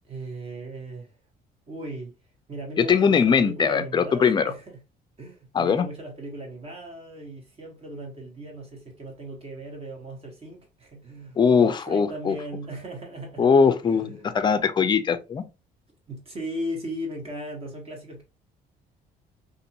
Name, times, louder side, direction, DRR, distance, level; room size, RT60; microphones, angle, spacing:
voice 1, 0.1-1.2 1.7-2.1 2.5-4.8 5.2-13.5 13.9-14.3 16.1-18.2, right 1 dB, 35° right, 1.2 m, -37 dB
voice 2, 2.8-4.5 5.5-5.9 11.4-12.4 13.4-15.4, left 6 dB, 25° left, 0.4 m, -21 dB
2.6 x 2.5 x 2.8 m
cardioid pair, 110°, 17 cm